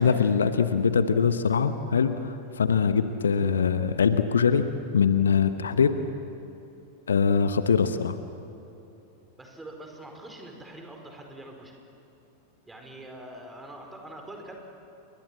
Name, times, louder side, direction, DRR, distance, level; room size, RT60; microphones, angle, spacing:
voice 1, 0.0-5.9 7.1-8.2, left 6 dB, 70° left, 11 dB, 1.0 m, -23 dB
voice 2, 9.4-11.8 12.7-14.6, right 1 dB, 10° right, 2 dB, 4.7 m, -44 dB
29.5 x 23.0 x 7.5 m, 2.9 s
figure-of-eight pair, 90°, 0 cm